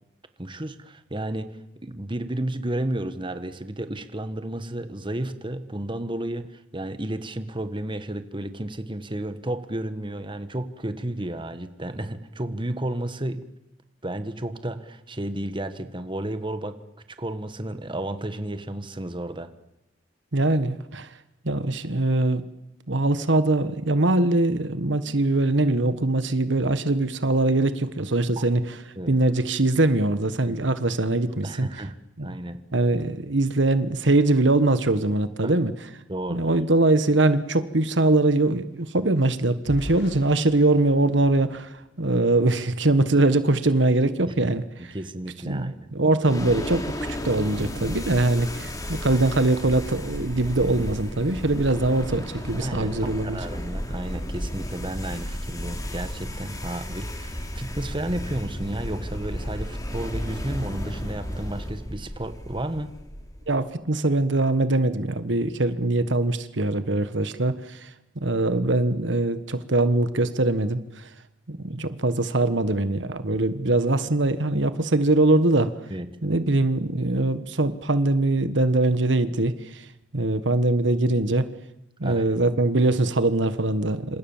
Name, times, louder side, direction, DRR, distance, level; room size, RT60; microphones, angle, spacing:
voice 1, 0.4-1.5 1.8-13.4 14.0-16.8 17.2-19.5 28.4-28.5 29.0-29.1 30.5-30.6 31.3-32.0 32.2-32.6 35.4-35.5 36.1-36.6 44.3-44.4 44.8-45.9 52.6-62.9 73.3-73.4 75.9-76.1 82.0-82.3, right 1 dB, 25° right, 10 dB, 1.6 m, -32 dB
voice 2, 20.3-21.1 21.4-22.4 22.9-28.6 29.1-31.7 32.2-32.3 32.7-35.7 36.3-44.9 45.5-46.9 47.2-53.4 63.5-67.9 68.2-71.1 71.5-75.7 76.2-79.8 80.1-81.5 82.0-84.2, right 2 dB, 70° right, 12 dB, 1.4 m, -22 dB
sound 1, 37.4-42.6 43.1-43.3 43.6-43.9, equal, 70° left, 6.1 m, -44 dB
sound 2, 46.2-63.6, equal, 20° left, 3.1 m, -33 dB
28.0 x 26.5 x 7.4 m, 0.87 s
head